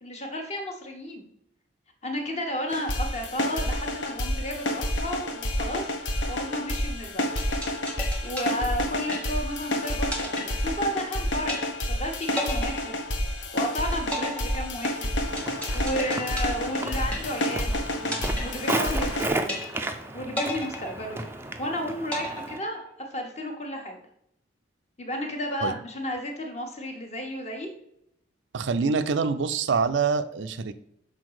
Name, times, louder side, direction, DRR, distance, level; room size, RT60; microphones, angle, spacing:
voice 1, 0.0-1.2 2.0-5.9 6.3-7.3 8.2-13.0 13.5-15.1 15.7-19.7 20.1-21.2 21.6-24.0 25.0-27.7, equal, 35° left, 2 dB, 1.2 m, -33 dB
sound 1, 2.7-19.3, left 1 dB, 65° left, 0.9 m, -29 dB
sound 2, 7.4-9.7 10.1-11.1 11.5-12.0 12.4-13.6 14.1-17.7 18.1-19.1 19.5-20.0 20.4-21.6 22.1-23.1, left 1 dB, 5° left, 1.1 m, -34 dB
Walk footsteps, 15.2-22.6, right 2 dB, 10° right, 0.4 m, -34 dB
voice 2, 28.5-30.7, right 5 dB, 70° right, 11 dB, 0.4 m, -25 dB
6.2 x 4.1 x 4.7 m, 0.74 s
head